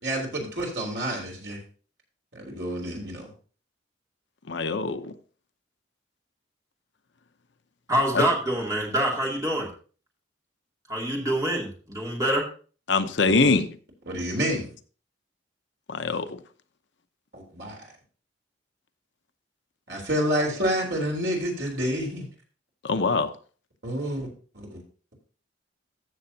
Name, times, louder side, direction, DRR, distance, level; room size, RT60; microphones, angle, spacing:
voice 1, 0.0-1.6 2.3-3.3 13.2-13.6 14.1-14.7 17.3-17.8 19.9-22.3 23.8-24.3 24.5-24.8, equal, 60° right, 3.6 m, -29 dB
voice 2, 4.5-5.1 8.1-8.3 12.9-13.7 15.9-16.3 22.8-23.3, left 3 dB, 65° left, 0.7 m, -23 dB
voice 3, 7.9-9.7 10.9-12.4, right 1 dB, 20° right, 2.7 m, -25 dB
14.5 x 6.8 x 2.8 m
head